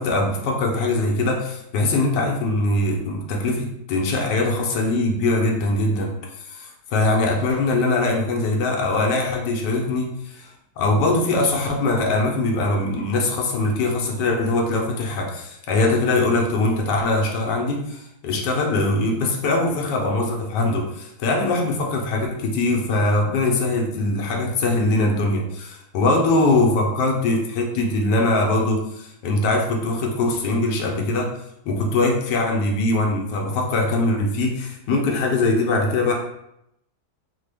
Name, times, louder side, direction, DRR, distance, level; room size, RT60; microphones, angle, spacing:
voice 1, 0.0-10.5 10.8-31.3 31.6-36.1, left 2 dB, 85° left, 0 dB, 1.3 m, -22 dB
3.7 x 2.1 x 3.3 m, 0.79 s
omnidirectional pair, 1.8 m